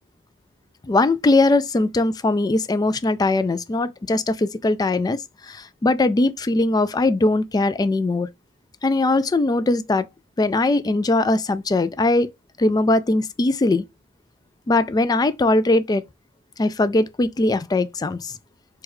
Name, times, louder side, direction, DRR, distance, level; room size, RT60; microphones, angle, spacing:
voice 1, 0.8-5.2 5.5-8.3 8.8-10.1 10.4-12.3 12.6-13.8 14.7-16.0 16.6-18.4, left 2 dB, 20° left, 0.3 m, -20 dB
6.1 x 2.3 x 3.1 m
head